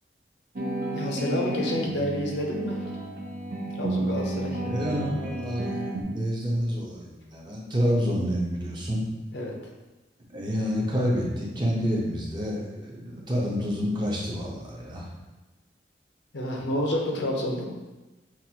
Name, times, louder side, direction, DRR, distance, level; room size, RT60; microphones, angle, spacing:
sound 1, 0.6-6.0, right 1 dB, 60° right, 0.6 m, -31 dB
voice 1, 0.9-2.8 3.8-4.6 9.3-9.6 16.3-17.6, left 1 dB, 75° left, 0 dB, 0.8 m, -29 dB
voice 2, 4.6-9.0 10.3-15.1, equal, 25° right, -4 dB, 0.8 m, -28 dB
5.9 x 2.5 x 2.9 m, 1.1 s
head